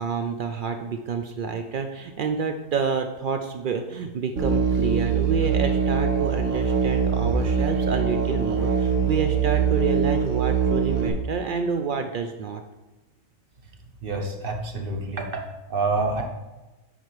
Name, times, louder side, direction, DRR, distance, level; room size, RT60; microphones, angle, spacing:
voice 1, 0.0-12.6, right 5 dB, 85° right, 6 dB, 0.4 m, -28 dB
Musical instrument, 4.4-11.1, right 6 dB, 60° right, 1.5 m, -23 dB
voice 2, 14.0-15.4 15.7-16.2, right 3 dB, 45° right, 2 dB, 1.1 m, -27 dB
9.2 x 4.2 x 4.7 m, 1.1 s
omnidirectional pair, 1.5 m